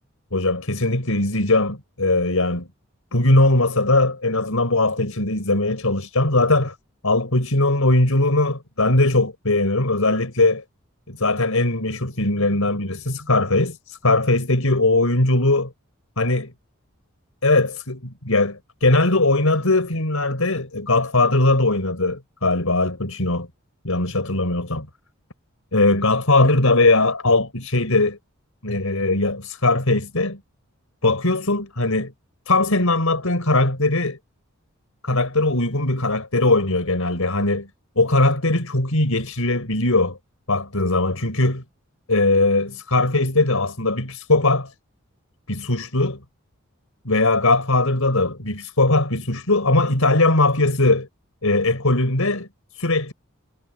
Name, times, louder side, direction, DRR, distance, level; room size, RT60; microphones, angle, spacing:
voice 1, 0.3-2.7 3.1-6.7 7.0-10.6 11.1-15.7 16.2-16.5 17.4-23.5 23.8-24.9 25.7-28.2 28.6-30.4 31.0-32.1 32.5-34.2 35.0-37.7 38.0-40.2 40.5-41.6 42.1-44.7 45.5-46.2 47.0-51.1 51.4-52.5 52.7-53.1, left 2 dB, 90° left, 4.6 m, -20 dB
head